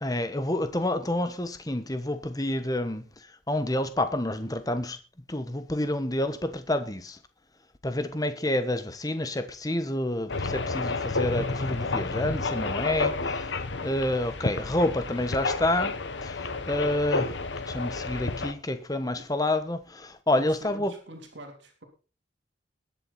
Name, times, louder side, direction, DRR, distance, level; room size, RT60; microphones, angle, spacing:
voice 1, 0.0-3.0 3.5-5.0 5.3-7.2 7.8-13.4 13.8-15.9 16.2-17.4 17.7-20.9, left 1 dB, 20° left, 1.2 m, -28 dB
sound 1, 10.3-18.5, left 3 dB, 75° left, 1.2 m, -30 dB
voice 2, 20.3-21.8, right 1 dB, 80° right, 3.2 m, -45 dB
21.0 x 7.7 x 4.2 m
head